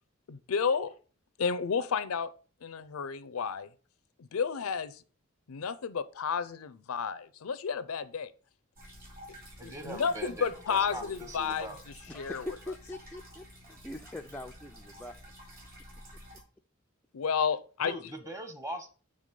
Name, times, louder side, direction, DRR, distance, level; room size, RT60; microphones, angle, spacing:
voice 1, 0.3-0.9 1.4-2.3 2.6-3.7 4.2-5.0 5.5-8.3 9.3-9.4 9.6-11.7 12.1-12.5 17.1-17.9, left 6 dB, 85° left, 0.5 m, -31 dB
sound 1, 8.8-16.4, equal, 45° right, 2.8 m, -51 dB
voice 2, 9.6-11.8 17.8-18.9, right 1 dB, 15° right, 0.9 m, -41 dB
voice 3, 12.1-15.1, left 1 dB, 10° left, 0.3 m, -42 dB
6.6 x 3.4 x 5.3 m
head